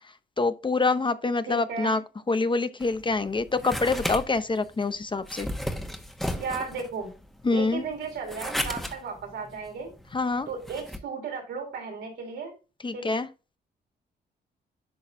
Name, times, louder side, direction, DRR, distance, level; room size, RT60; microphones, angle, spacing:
voice 1, 0.4-2.0 2.3-5.5 7.4-7.8 10.1-10.5 12.8-13.3, left 3 dB, 25° left, 0.8 m, -26 dB
voice 2, 1.5-2.0 6.3-7.1 7.5-9.9 10.5-12.5 12.9-13.0, right 5 dB, 90° right, 3.5 m, -35 dB
sound 1, 2.8-11.0, equal, ahead, 1.4 m, -35 dB
11.0 x 4.0 x 2.7 m
cardioid pair, 70°, 18 cm